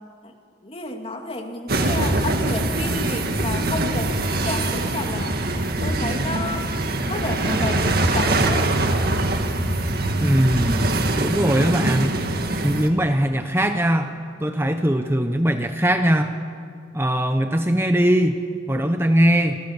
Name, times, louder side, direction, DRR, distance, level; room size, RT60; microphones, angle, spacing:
voice 1, 0.6-5.4 5.8-6.7 7.1-8.7, left 2 dB, 30° left, 3 dB, 2.7 m, -31 dB
sound 1, 1.7-12.9, right 2 dB, 55° right, 1.9 m, -23 dB
voice 2, 10.2-12.2 12.6-14.1 14.4-16.3 16.9-18.4 18.7-19.6, equal, 15° right, 7 dB, 0.9 m, -20 dB
29.0 x 24.5 x 7.3 m, 2.2 s
head